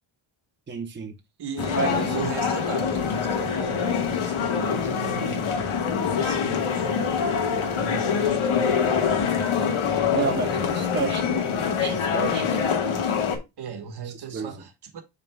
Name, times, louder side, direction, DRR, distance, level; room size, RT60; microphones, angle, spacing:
voice 1, 0.7-1.1 1.7-2.3 10.1-13.2 14.3-14.6, right 4 dB, 25° right, 0.8 m, -31 dB
voice 2, 1.4-5.7 6.0-7.0 7.7-9.0 13.6-15.0, right 5 dB, 55° right, 1.4 m, -37 dB
sound 1, 1.6-13.4, left 6 dB, 80° left, 1.6 m, -25 dB
10.5 x 3.9 x 2.3 m
wide cardioid pair, 170°, 49 cm